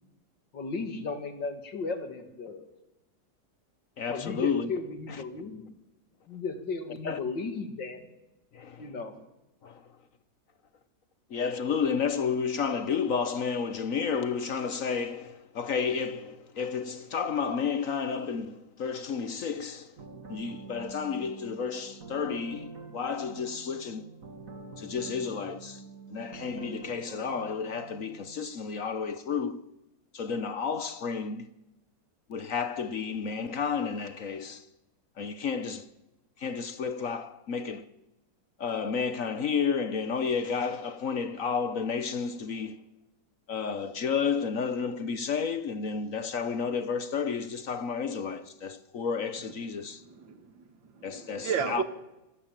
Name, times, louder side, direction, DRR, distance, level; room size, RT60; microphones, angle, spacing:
voice 1, 0.5-2.7 4.1-5.7 6.3-8.0 8.8-9.2, left 4 dB, 75° left, 3.0 m, -35 dB
voice 2, 4.0-4.7 5.1-5.2 7.0-7.2 8.5-8.9 9.6-10.0 11.3-20.0 20.3-24.1 24.8-25.8 26.1-29.6 30.1-31.5 32.3-34.7 35.2-35.9 36.4-37.9 38.6-42.8 43.5-50.0 51.0-51.8, left 6 dB, 55° left, 1.1 m, -31 dB
sound 1, 20.0-28.5, right 3 dB, 45° right, 2.7 m, -46 dB
voice 3, 49.8-51.8, right 6 dB, 80° right, 2.4 m, -34 dB
26.5 x 15.5 x 7.5 m
omnidirectional pair, 2.0 m